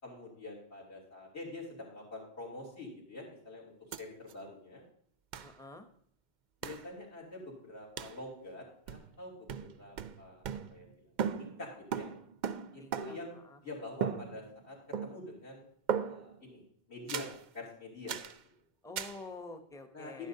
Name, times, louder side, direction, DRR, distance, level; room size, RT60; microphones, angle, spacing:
voice 1, 0.0-4.8 6.6-10.4 10.7-11.1 11.4-12.1 12.7-14.8 15.0-15.7 16.0-16.6 16.9-17.3 17.5-18.2 19.9-20.3, left 2 dB, 75° left, -2 dB, 3.2 m, -46 dB
sound 1, 3.9-4.0 4.3-4.4 5.3-5.5 6.6-6.9 8.0-8.2 8.9-9.2 9.5-10.9 11.2-13.4 14.0-14.7 14.9-15.4 15.9-16.4 17.1-17.4 18.1-18.4 19.0-19.2, right 7 dB, 60° right, 0.5 m, -37 dB
voice 2, 5.4-5.9 12.8-13.2 13.4-13.6 18.8-20.3, left 2 dB, 5° left, 6 dB, 0.5 m, -47 dB
11.5 x 10.0 x 2.7 m, 0.66 s
omnidirectional pair, 1.1 m